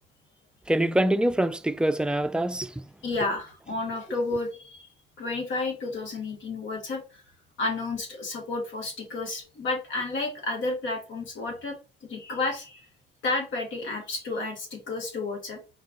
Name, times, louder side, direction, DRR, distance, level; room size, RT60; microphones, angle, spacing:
voice 1, 0.7-2.7, right 1 dB, 5° right, 0.4 m, -24 dB
voice 2, 3.0-4.9 5.2-7.2 7.6-12.9 13.2-15.6, left 3 dB, 75° left, 1.8 m, -31 dB
4.5 x 2.5 x 3.7 m
cardioid pair, 90°, 20 cm